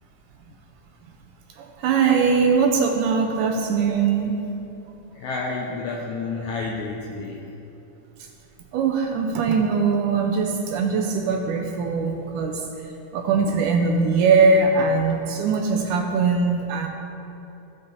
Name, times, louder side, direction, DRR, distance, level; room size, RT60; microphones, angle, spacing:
voice 1, 1.6-4.5 8.7-12.6 13.1-16.9, right 4 dB, 80° right, 2 dB, 2.0 m, -21 dB
voice 2, 5.1-7.4, left 3 dB, 80° left, -1 dB, 1.7 m, -30 dB
16.0 x 5.4 x 4.0 m, 2.9 s
omnidirectional pair, 4.1 m